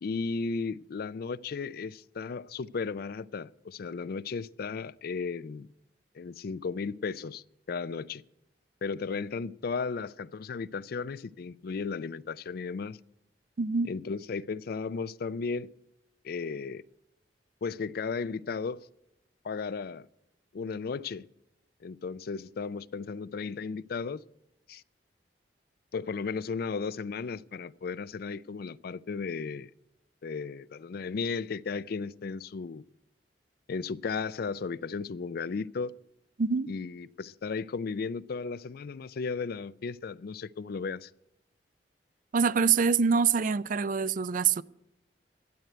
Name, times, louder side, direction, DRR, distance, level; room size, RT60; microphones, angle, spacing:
voice 1, 0.0-5.7 6.1-8.2 8.8-13.0 13.9-15.7 16.2-16.8 17.6-18.9 19.4-20.1 20.5-21.3 21.8-24.2 24.7-24.8 25.9-29.7 30.2-32.8 33.7-35.9 36.7-41.1, left 5 dB, 60° left, 0.4 m, -35 dB
voice 2, 13.6-13.9 36.4-36.7 42.3-44.6, right 5 dB, 50° right, 0.4 m, -25 dB
12.0 x 8.0 x 9.1 m
head